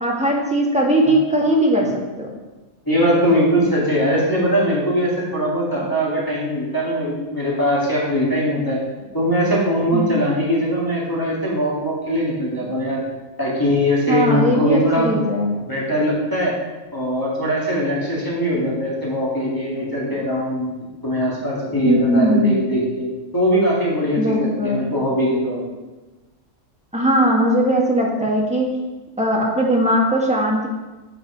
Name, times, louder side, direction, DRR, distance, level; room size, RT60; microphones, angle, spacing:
voice 1, 0.0-1.9 2.2-2.3 9.9-10.2 14.1-15.6 21.8-22.6 24.2-24.9 26.9-28.7 29.2-30.7, equal, 5° right, -2 dB, 1.3 m, -19 dB
voice 2, 2.9-8.8 9.1-13.0 13.4-15.1 15.7-16.5 16.9-20.7 21.0-23.1 23.3-25.6, equal, 15° left, -7 dB, 2.1 m, -21 dB
7.7 x 5.5 x 5.0 m, 1.2 s
omnidirectional pair, 1.3 m